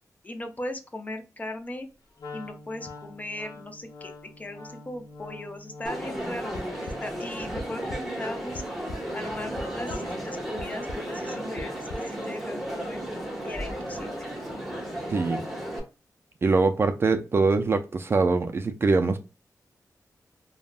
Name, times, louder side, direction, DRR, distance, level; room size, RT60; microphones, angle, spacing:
voice 1, 0.2-1.9 2.3-8.6 9.1-11.8 12.1-13.0 13.4-14.3, left 1 dB, 25° left, 0.5 m, -38 dB
Wind instrument woodwind instrument, 2.2-6.2, left 3 dB, 70° left, 0.8 m, -44 dB
Crowd, 5.8-15.8, right 1 dB, ahead, 0.9 m, -34 dB
sound 1, 6.5-7.0 7.6-8.0 8.4-9.0 9.6-10.0 10.6-11.0 11.6-12.0, left 1 dB, 90° left, 0.4 m, -36 dB
voice 2, 15.1-15.4 16.4-19.2, right 3 dB, 40° right, 0.3 m, -23 dB
3.4 x 2.1 x 2.3 m
wide cardioid pair, 125°, 6 cm